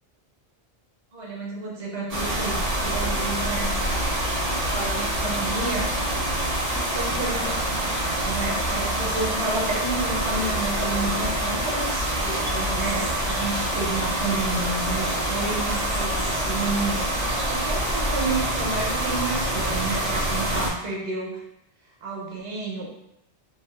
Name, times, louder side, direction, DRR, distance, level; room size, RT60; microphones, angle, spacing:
voice 1, 1.1-3.8 4.7-5.9 6.6-21.4 22.0-22.9, right 3 dB, 85° right, -3 dB, 1.0 m, -31 dB
sound 1, 2.1-20.7, right 1 dB, 45° right, 0.5 m, -26 dB
2.6 x 2.3 x 2.2 m, 0.81 s
omnidirectional pair, 1.2 m